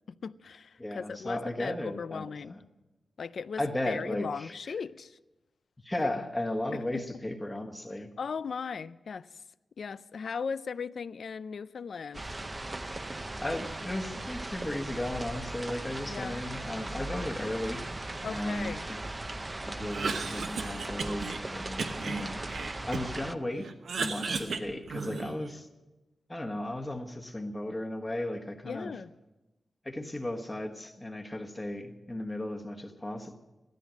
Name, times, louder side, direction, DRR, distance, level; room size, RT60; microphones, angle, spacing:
voice 1, 0.1-2.6 3.2-5.2 6.0-6.1 6.7-7.0 8.2-9.4 9.8-12.4 16.1-16.4 18.2-18.9 28.6-29.1, left 5 dB, 60° left, 0.4 m, -38 dB
voice 2, 0.8-2.6 3.6-4.5 5.8-8.1 13.4-17.8 18.3-19.0 19.6-22.4 22.8-23.7 24.0-25.7 26.3-28.9 29.8-33.3, left 1 dB, 15° left, 1.2 m, -35 dB
sound 1, 12.1-23.4, right 2 dB, 20° right, 0.5 m, -38 dB
Cough, 19.8-21.4 21.8-23.3 23.6-25.5, right 4 dB, 80° right, 1.1 m, -35 dB
16.5 x 13.5 x 6.3 m
wide cardioid pair, 180°, 0 cm